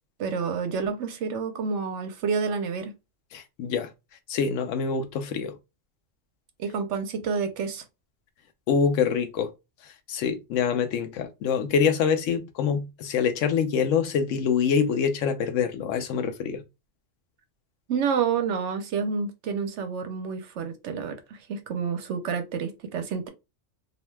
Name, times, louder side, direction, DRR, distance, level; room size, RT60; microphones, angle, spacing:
voice 1, 0.2-2.9 6.6-7.8 17.9-23.3, right 6 dB, 70° right, 0.9 m, -29 dB
voice 2, 3.3-3.9 4.3-5.5 8.7-9.5 10.1-16.6, left 6 dB, 85° left, 0.9 m, -25 dB
2.7 x 2.2 x 3.1 m
omnidirectional pair, 1.3 m